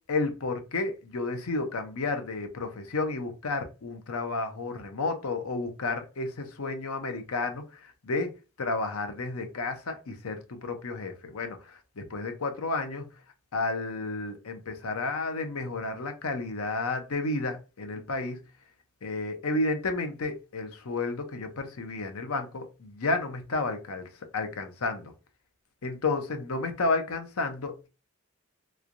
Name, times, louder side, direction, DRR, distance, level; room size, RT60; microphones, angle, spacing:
voice 1, 0.1-7.6 8.0-8.3 8.6-11.6 12.0-13.1 13.5-18.4 19.0-24.0 24.3-25.1 25.8-27.9, left 3 dB, 80° left, 0.7 m, -31 dB
3.4 x 3.1 x 2.5 m
head